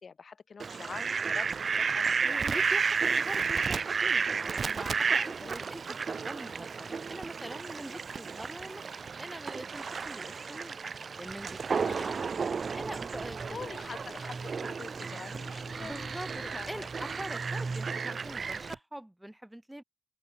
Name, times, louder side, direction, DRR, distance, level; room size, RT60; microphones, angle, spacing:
voice 1, 0.0-2.6 5.2-5.5 11.8-12.1 13.5-16.9, left 5 dB, 65° left, 4.5 m, -46 dB
Fowl, 0.6-18.7, right 5 dB, 65° right, 0.6 m, -32 dB
voice 2, 2.2-8.9 9.2-10.7 11.1-12.1 12.8-13.7 15.8-19.8, right 1 dB, 10° right, 4.1 m, -43 dB
sound 1, 11.3-18.8, right 3 dB, 40° right, 3.6 m, -43 dB
open air
wide cardioid pair, 120°, 0 cm